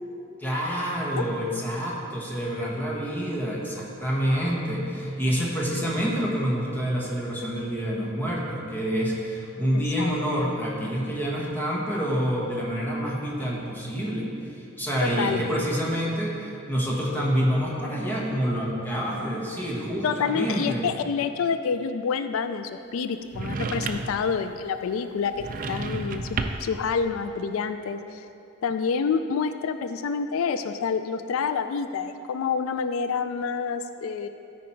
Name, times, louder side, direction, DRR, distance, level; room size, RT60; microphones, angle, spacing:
voice 1, 0.4-20.8, equal, 10° left, -4 dB, 1.4 m, -27 dB
voice 2, 9.7-10.1 15.0-15.6 20.0-28.3 28.6-34.3, left 6 dB, 80° left, 10 dB, 0.3 m, -28 dB
sound 1, 23.3-24.3 25.3-26.8, right 3 dB, 40° right, 0.5 m, -31 dB
13.0 x 5.1 x 4.5 m, 2.7 s
head